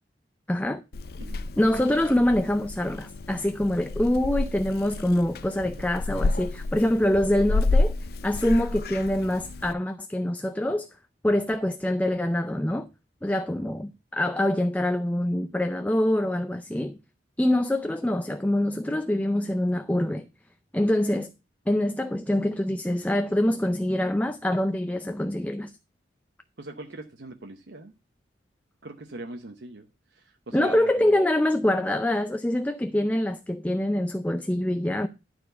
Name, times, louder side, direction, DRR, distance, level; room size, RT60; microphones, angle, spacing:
voice 1, 0.5-0.8 1.6-7.9 8.2-10.9 11.2-12.9 13.2-17.0 17.4-20.3 20.7-21.3 21.7-25.7 30.5-35.1, left 1 dB, 10° left, 0.5 m, -25 dB
Purr / Meow, 0.9-9.7, left 2 dB, 60° left, 0.5 m, -30 dB
voice 2, 26.6-27.9 28.8-31.2, right 2 dB, 85° right, 0.9 m, -41 dB
12.0 x 4.3 x 6.7 m
head